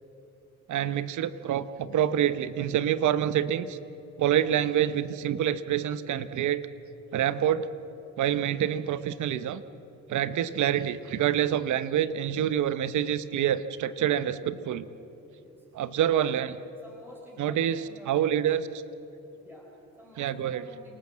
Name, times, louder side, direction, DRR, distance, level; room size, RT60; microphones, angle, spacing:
voice 1, 0.7-3.8 4.2-6.6 7.1-7.7 8.2-9.6 10.1-14.9 15.7-16.5 17.4-17.8 18.1-18.6 20.2-20.6, right 10 dB, 75° right, 13 dB, 1.0 m, -26 dB
voice 2, 16.8-18.6 19.4-21.0, equal, 5° right, -2 dB, 3.9 m, -51 dB
27.5 x 19.0 x 7.6 m, 2.9 s
cardioid pair, 90°, 30 cm